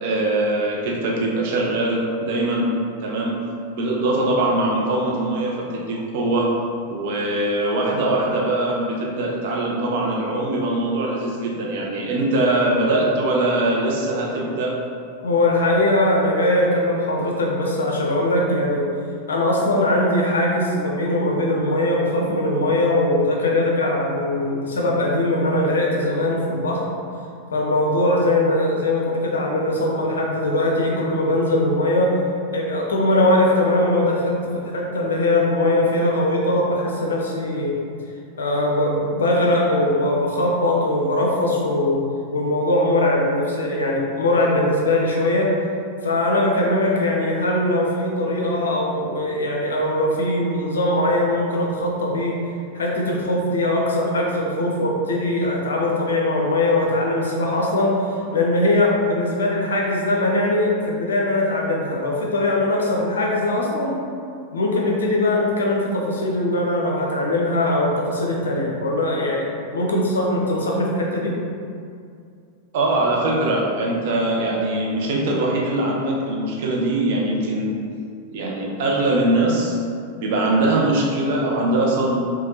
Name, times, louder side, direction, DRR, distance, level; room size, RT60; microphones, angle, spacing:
voice 1, 0.0-2.7 3.0-3.4 3.7-6.5 6.9-14.8 72.7-77.8 78.3-79.8 80.2-82.2, right 2 dB, 50° right, -2 dB, 0.5 m, -22 dB
voice 2, 15.2-18.8 19.3-26.8 27.5-32.1 32.5-37.8 38.4-42.0 42.3-45.5 46.0-52.3 52.7-63.9 64.5-71.3, left 1 dB, 70° left, -2 dB, 0.5 m, -21 dB
3.3 x 2.2 x 2.7 m, 2.4 s
figure-of-eight pair, 90°, 0 cm